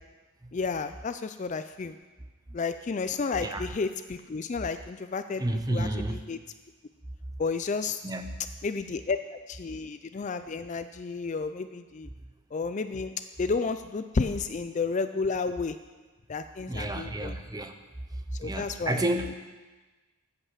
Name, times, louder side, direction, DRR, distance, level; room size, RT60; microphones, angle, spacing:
voice 1, 0.5-1.9 2.5-5.4 5.7-6.4 7.4-8.0 8.6-12.1 12.5-13.1 13.4-15.8 16.3-17.3 18.4-19.0, left 4 dB, 35° left, 10 dB, 0.4 m, -31 dB
voice 2, 5.4-6.2 8.0-8.4 16.7-17.7 18.4-19.3, right 1 dB, 15° right, 6 dB, 0.7 m, -30 dB
14.5 x 5.6 x 7.3 m, 1.3 s
head